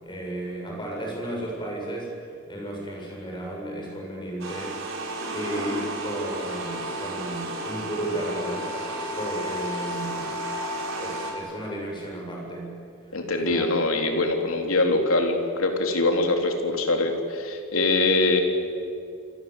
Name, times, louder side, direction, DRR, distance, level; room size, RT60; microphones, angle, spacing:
voice 1, 0.0-2.1 2.5-4.7 5.3-8.7 9.1-10.5 10.9-12.7 13.0-13.1 13.4-13.7, right 1 dB, 20° left, -1 dB, 7.7 m, -33 dB
sound 1, 4.4-11.3, right 1 dB, 65° right, 6.2 m, -32 dB
voice 2, 13.1-18.4, left 2 dB, 70° left, 3 dB, 3.8 m, -23 dB
28.0 x 26.0 x 8.3 m, 2.4 s
head